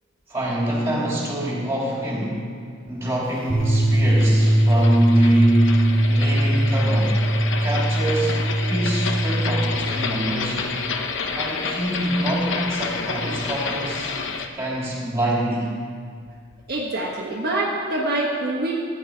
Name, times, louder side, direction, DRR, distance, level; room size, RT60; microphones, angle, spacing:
voice 1, 0.3-2.4 2.9-7.2 7.6-10.7 11.4-14.1 14.5-15.7, right 1 dB, 15° right, -4 dB, 2.8 m, -25 dB
sound 1, 3.4-14.5, left 4 dB, 65° left, 0.8 m, -30 dB
sound 2, 3.5-9.8, right 1 dB, 10° left, 3.3 m, -20 dB
voice 2, 16.7-18.7, right 2 dB, 50° right, -4 dB, 1.3 m, -25 dB
14.5 x 9.4 x 4.5 m, 2.1 s
head